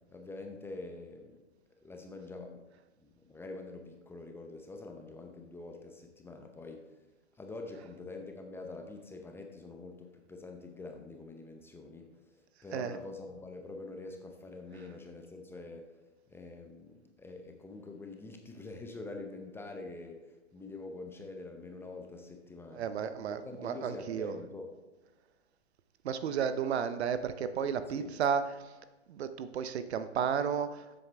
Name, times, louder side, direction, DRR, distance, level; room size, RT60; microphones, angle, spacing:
voice 1, 0.1-1.4 1.8-2.6 3.0-6.9 7.4-12.1 12.6-15.9 16.3-22.9 23.2-24.7 27.9-28.1, left 3 dB, 5° left, 3 dB, 0.7 m, -45 dB
voice 2, 22.7-24.3 26.0-28.4 29.1-31.0, right 7 dB, 60° right, 12 dB, 0.8 m, -33 dB
13.5 x 7.8 x 3.4 m, 1.1 s
hypercardioid pair, 125°, 37 cm